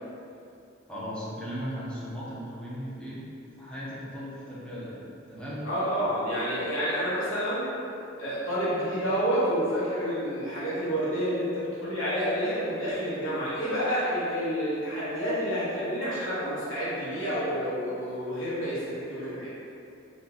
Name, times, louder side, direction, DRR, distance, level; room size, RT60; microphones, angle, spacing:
voice 1, 0.9-3.3 3.6-5.7, equal, 5° left, -9 dB, 0.6 m, -37 dB
voice 2, 5.6-7.7 8.2-19.5, equal, 75° left, -9 dB, 1.1 m, -29 dB
2.9 x 2.5 x 3.7 m, 2.7 s
head